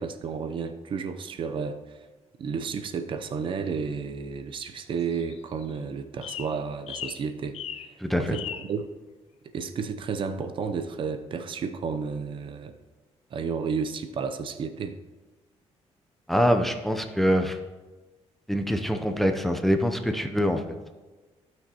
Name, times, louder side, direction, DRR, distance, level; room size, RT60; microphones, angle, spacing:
voice 1, 0.0-2.0 2.4-7.9 8.2-8.9 9.5-12.7 13.3-15.0, right 5 dB, 50° right, 8 dB, 0.6 m, -32 dB
sound 1, 5.0-5.8 6.2-6.6 6.9-7.2 7.5-7.9 8.3-8.7, left 10 dB, 65° left, 0.6 m, -37 dB
voice 2, 8.0-8.3 16.3-17.6 18.5-20.6, equal, ahead, 5 dB, 0.6 m, -24 dB
15.5 x 6.0 x 2.9 m, 1.2 s
cardioid pair, 140°, 11 cm